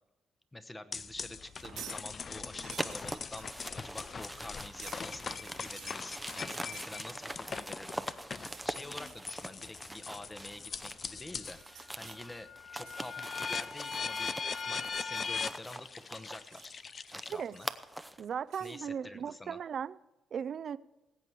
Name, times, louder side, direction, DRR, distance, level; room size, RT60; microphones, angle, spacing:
voice 1, 0.5-16.7 17.1-17.7 18.6-19.6, left 1 dB, 15° left, 1.0 m, -48 dB
sound 1, 0.9-11.6 12.0-17.7, left 5 dB, 45° left, 0.5 m, -40 dB
sound 2, 1.5-2.0 2.4-7.7 8.0-8.7 9.0-9.3 9.7-10.0 11.3-12.2 12.7-14.5 14.8-15.7 15.9-16.7 17.1-18.0 18.5-18.8, right 10 dB, 85° right, 1.4 m, -53 dB
sound 3, 2.7-11.1 11.4-18.3, right 1 dB, 5° right, 0.7 m, -43 dB
voice 2, 18.2-20.0 20.3-20.8, right 7 dB, 55° right, 0.5 m, -37 dB
19.0 x 8.4 x 4.6 m
cardioid pair, 90°, 0 cm